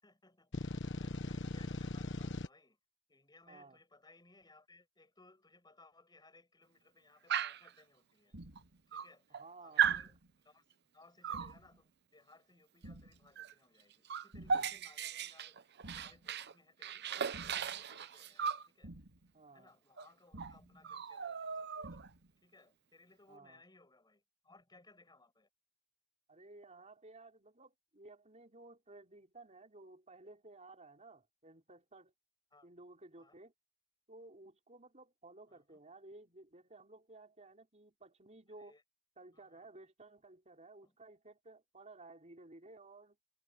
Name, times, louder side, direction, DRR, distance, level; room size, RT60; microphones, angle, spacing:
voice 1, 0.0-2.8 3.1-8.4 8.9-10.2 10.4-10.6 10.9-18.5 18.7-18.9 19.5-22.0 22.4-25.5 32.5-32.7 33.2-33.4 35.5-35.8 38.5-38.8 39.3-39.7 40.8-41.0, left 2 dB, 20° left, 7.6 m, -64 dB
sound 1, 0.5-2.5, left 2 dB, 65° left, 1.2 m, -39 dB
voice 2, 3.5-3.8 9.3-10.0 19.3-19.7 23.3-23.6 26.3-32.1 32.6-33.5 34.1-38.7 39.2-43.2, right 2 dB, 35° right, 5.4 m, -56 dB
Dog, 7.3-7.7 8.6-8.7 8.9-9.4 9.8-10.1 11.2-11.5 13.4-13.5 13.8-16.5 16.8-18.7 20.0-20.1 20.4-20.5 20.8-22.1, right 7 dB, 55° right, 0.8 m, -36 dB
sound 2, 8.3-8.8 9.8-10.3 11.3-11.8 12.8-13.3 14.3-14.8 15.8-16.3 17.3-17.8 18.8-19.3 20.3-20.8 21.8-22.3, right 1 dB, 80° right, 4.4 m, -52 dB
head